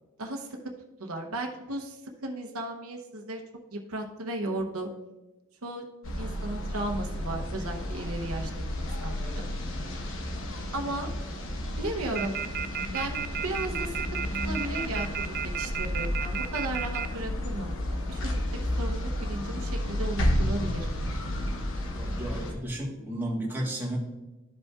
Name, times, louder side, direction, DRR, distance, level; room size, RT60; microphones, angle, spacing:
voice 1, 1.0-3.4 3.7-4.9 5.6-5.8 6.2-8.5 8.8-9.4 10.7-11.1 11.8-12.4 12.9-13.9 14.4-18.4 18.8-20.9, right 1 dB, 75° right, 2 dB, 0.9 m, -35 dB
sound 1, 6.0-22.5, left 1 dB, 60° left, 1.0 m, -32 dB
sound 2, 12.2-17.1, right 9 dB, 45° right, 0.3 m, -32 dB
voice 2, 21.9-24.0, right 1 dB, 10° right, -4 dB, 1.4 m, -33 dB
12.5 x 5.2 x 2.4 m, 1.1 s
head